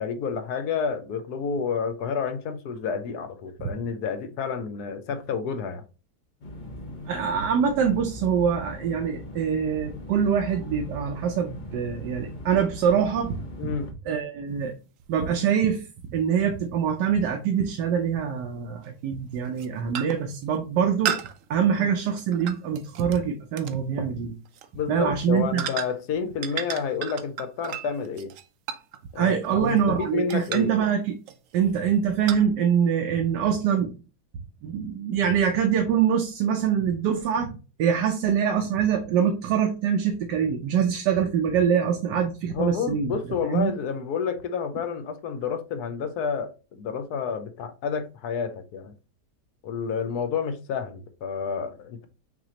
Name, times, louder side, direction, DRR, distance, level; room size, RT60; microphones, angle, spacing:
voice 1, 0.0-5.8 13.6-13.9 21.8-21.9 24.7-28.3 29.1-30.7 42.5-48.9 49.6-52.1, left 6 dB, 70° left, 1.2 m, -30 dB
sound 1, 6.4-13.9, left 1 dB, 45° left, 0.6 m, -40 dB
voice 2, 7.1-13.4 14.1-14.7 15.1-15.8 16.1-21.2 21.5-24.3 24.9-25.6 29.2-31.1 31.5-33.9 34.6-43.1 43.5-43.7, right 7 dB, 85° right, 1.3 m, -24 dB
sound 2, 15.0-15.1 17.6-17.7 18.8-19.0 19.4-19.7 19.9-20.3 21.0-23.2 23.6-23.8 24.4-24.7 25.6-26.1 26.4-29.9 30.3-30.8 31.3-31.6 32.3-32.4, right 9 dB, 70° right, 0.8 m, -34 dB
6.0 x 3.0 x 2.8 m
omnidirectional pair, 1.8 m